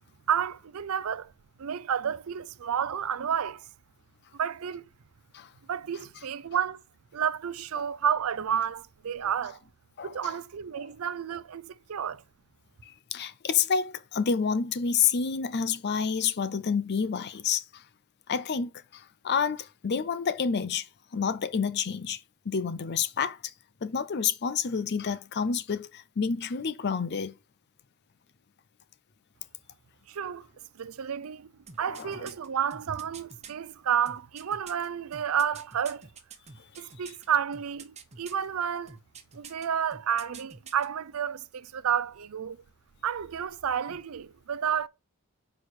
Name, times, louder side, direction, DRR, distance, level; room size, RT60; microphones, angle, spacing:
voice 1, 0.3-1.3 1.6-3.7 4.3-4.8 5.7-6.8 7.1-9.6 10.0-12.2 30.1-30.5 30.7-31.5 31.8-36.1 36.8-39.0 39.3-42.6 43.0-44.9, right 8 dB, 80° right, 0.5 m, -31 dB
voice 2, 10.0-10.3 10.8-10.9 12.8-17.8 18.3-20.9 21.1-22.2 22.5-23.5 23.8-27.3 31.8-32.3, left 6 dB, 50° left, 0.5 m, -29 dB
sound 1, 31.7-33.5 34.1-37.3 37.5-38.5 38.9-39.7 39.9-40.9 41.2-41.3, right 5 dB, 30° right, 1.0 m, -46 dB
6.3 x 4.8 x 4.8 m
head